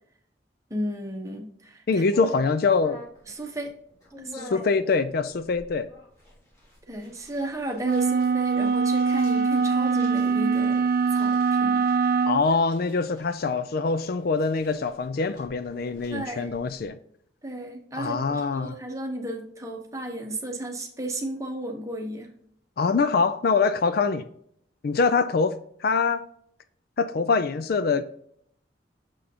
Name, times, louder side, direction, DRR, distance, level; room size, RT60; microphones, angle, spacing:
voice 1, 0.7-2.0 3.3-3.7 4.2-4.5 6.9-10.9 11.1-11.9 16.1-16.5 17.4-22.3, right 1 dB, 15° right, 1.0 m, -34 dB
voice 2, 1.9-3.0 4.3-5.9 12.3-17.0 18.0-18.8 22.8-24.2 24.8-26.3 27.0-28.0, left 4 dB, 55° left, 0.4 m, -24 dB
sound 1, 2.1-16.9, equal, 20° left, 2.9 m, -48 dB
sound 2, 7.8-12.4, right 5 dB, 55° right, 0.4 m, -23 dB
6.4 x 6.1 x 2.8 m
head